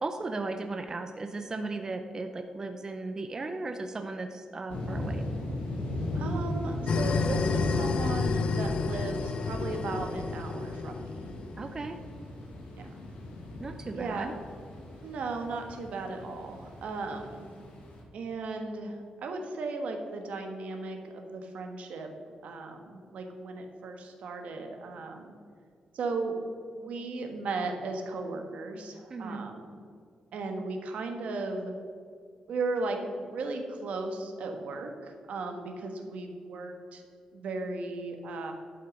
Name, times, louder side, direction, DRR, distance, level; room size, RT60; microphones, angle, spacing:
voice 1, 0.0-5.2 11.6-12.0 13.6-14.3 29.1-29.5, right 3 dB, 30° right, 7 dB, 0.5 m, -36 dB
sound 1, 4.7-18.0, left 1 dB, 90° left, 2.2 m, -37 dB
voice 2, 6.1-11.0 12.8-12.9 13.9-14.3 15.0-17.5 18.1-22.1 22.4-25.3 25.9-26.4 26.7-29.8 30.3-31.7 32.5-37.0 37.3-38.5, right 3 dB, 75° right, 4 dB, 1.3 m, -36 dB
sound 2, 6.9-11.7, left 4 dB, 50° left, 0.5 m, -30 dB
11.0 x 5.7 x 5.2 m, 2.2 s
wide cardioid pair, 130°, 2 cm